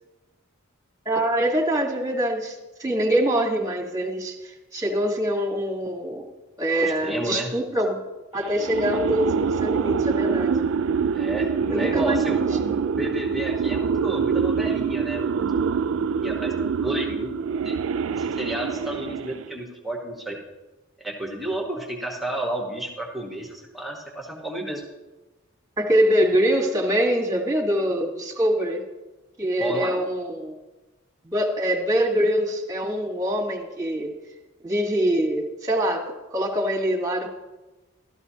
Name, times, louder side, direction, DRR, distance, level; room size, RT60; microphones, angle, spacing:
voice 1, 1.0-6.3 6.6-8.0 8.3-10.6 11.7-12.3 12.7-12.8 25.8-28.8 29.4-30.6 31.2-34.2 34.6-37.3, equal, 15° right, 2 dB, 1.4 m, -24 dB
voice 2, 6.7-7.5 11.1-15.3 16.2-17.3 17.6-17.8 18.1-20.4 21.0-24.8 29.6-30.0, right 1 dB, ahead, -1 dB, 1.1 m, -31 dB
sound 1, 8.4-19.6, right 6 dB, 80° right, 0.4 m, -25 dB
14.0 x 12.5 x 2.8 m, 1.1 s
head